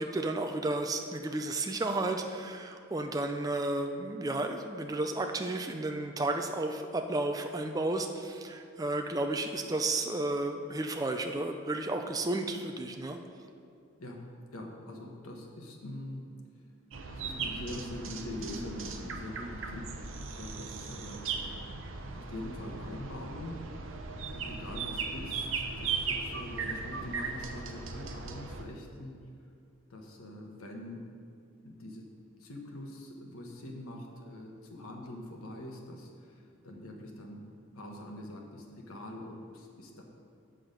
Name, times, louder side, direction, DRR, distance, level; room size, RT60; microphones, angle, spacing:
voice 1, 0.0-13.2, right 2 dB, 15° right, 5 dB, 0.3 m, -32 dB
voice 2, 14.5-16.3 17.1-21.3 22.1-23.8 24.3-29.2 29.9-31.0 31.6-32.1 32.4-40.0, left 1 dB, 90° left, 1 dB, 1.2 m, -44 dB
sound 1, 16.9-28.6, right 4 dB, 70° right, 0.7 m, -38 dB
7.7 x 6.3 x 5.1 m, 2.3 s
head